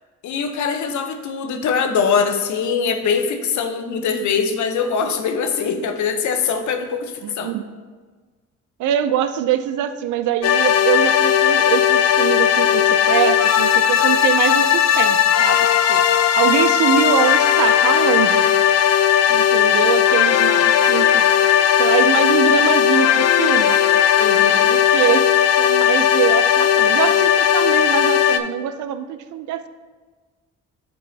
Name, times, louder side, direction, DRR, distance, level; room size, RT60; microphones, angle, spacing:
voice 1, 0.2-7.5 24.2-24.7, left 6 dB, 75° left, 6 dB, 0.9 m, -22 dB
voice 2, 7.2-7.6 8.8-18.5 19.3-21.2 21.8-23.8 24.6-25.3 25.6-29.7, right 10 dB, 80° right, 9 dB, 0.5 m, -23 dB
sound 1, 10.4-28.4, left 9 dB, 55° left, 0.5 m, -16 dB
11.0 x 4.6 x 2.8 m, 1.4 s
cardioid pair, 90°, 30 cm